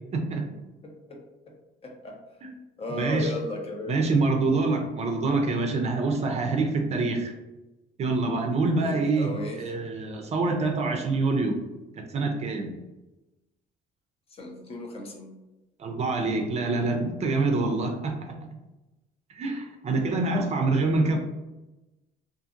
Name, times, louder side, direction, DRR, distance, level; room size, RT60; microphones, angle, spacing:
voice 1, 0.1-0.4 2.4-2.5 2.9-3.3 3.9-7.3 8.0-9.3 9.6-11.6 12.0-12.7 15.8-18.1 19.3-21.2, right 3 dB, 40° right, 3 dB, 0.4 m, -26 dB
voice 2, 0.8-1.5 1.8-2.2 2.8-4.0 8.8-9.6 14.3-15.3, left 2 dB, 35° left, 1 dB, 0.6 m, -36 dB
2.6 x 2.5 x 2.5 m, 1.0 s
cardioid pair, 110°, 17 cm